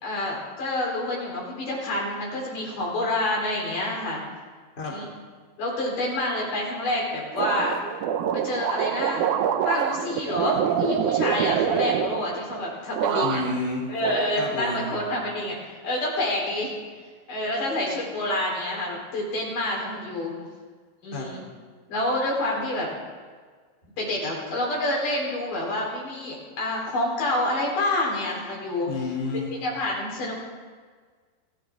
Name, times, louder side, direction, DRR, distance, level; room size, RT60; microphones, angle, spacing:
voice 1, 0.0-4.2 4.9-5.1 5.6-7.8 8.3-9.3 9.6-13.4 13.9-16.8 17.3-20.3 21.0-21.4 21.9-22.9 24.0-28.9 29.5-30.3, left 1 dB, 65° left, -3 dB, 5.4 m, -28 dB
sound 1, 7.4-12.6 12.9-13.7 14.0-14.9, right 9 dB, 75° right, 2.1 m, -26 dB
voice 2, 13.2-13.9 14.4-14.8 21.1-21.3 28.9-29.6, left 3 dB, 20° left, -2 dB, 2.7 m, -30 dB
30.0 x 11.5 x 3.7 m, 1.5 s
omnidirectional pair, 4.0 m